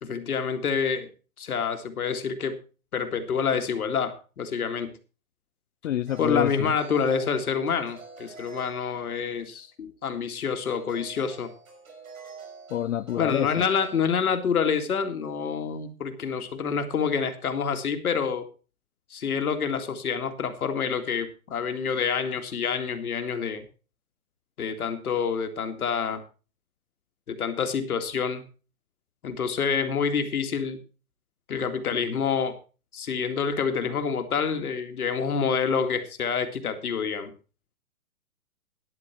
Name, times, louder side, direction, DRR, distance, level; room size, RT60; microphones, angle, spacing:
voice 1, 0.0-1.1 1.4-2.6 2.9-4.9 6.2-11.5 13.2-18.5 19.1-23.7 24.6-26.2 27.3-28.4 29.2-30.8 31.5-32.5 32.9-37.3, left 6 dB, 80° left, 7 dB, 2.3 m, -27 dB
voice 2, 5.8-6.7 12.7-13.6, left 11 dB, 60° left, 11 dB, 0.6 m, -28 dB
sound 1, 6.1-9.4 10.7-14.1, right 4 dB, 70° right, 5.4 m, -46 dB
13.0 x 10.0 x 4.4 m, 0.34 s
hypercardioid pair, 160°, 44 cm